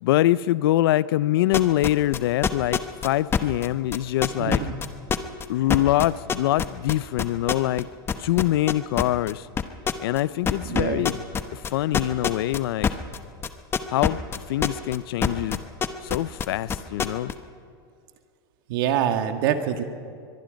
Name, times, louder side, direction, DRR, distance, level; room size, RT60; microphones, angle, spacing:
voice 1, 0.0-4.6 5.5-7.9 8.2-9.5 10.0-11.2 11.5-12.9 13.9-14.2 14.5-15.6 16.0-17.3, left 14 dB, 75° left, 0.5 m, -24 dB
sound 1, 1.5-7.8 8.1-9.3 9.6-10.2 10.5-15.0 15.2-17.3, left 7 dB, 20° left, 0.9 m, -24 dB
voice 2, 4.4-4.7 10.6-11.1 18.7-19.8, right 10 dB, 65° right, 1.8 m, -25 dB
23.0 x 22.5 x 5.2 m
supercardioid pair, 140°, 13 cm